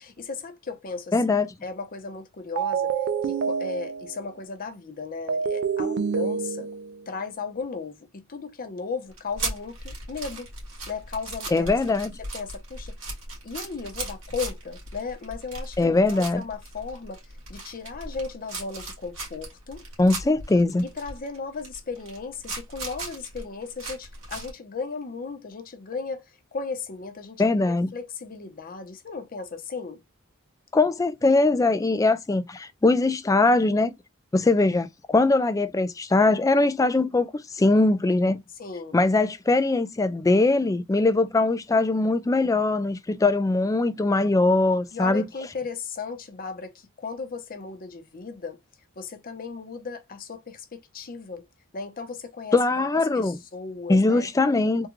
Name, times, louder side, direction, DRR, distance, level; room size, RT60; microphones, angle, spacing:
voice 1, 0.0-1.2 1.6-2.9 3.2-6.7 7.1-10.5 10.9-11.7 12.2-13.0 13.4-19.8 20.8-30.0 38.6-39.0 44.9-48.6 49.0-51.5 51.7-52.9 53.1-54.3, left 4 dB, 45° left, 0.7 m, -36 dB
voice 2, 1.1-1.5 11.5-12.1 15.8-16.4 20.0-20.8 27.4-27.9 30.7-33.9 34.3-38.4 38.9-45.2 52.5-53.4 53.9-54.9, left 2 dB, 15° left, 0.3 m, -21 dB
sound 1, 2.6-4.3 5.3-7.0, right 6 dB, 55° right, 0.4 m, -27 dB
sound 2, 9.1-24.5, right 2 dB, 80° right, 2.0 m, -37 dB
3.6 x 2.3 x 3.0 m
head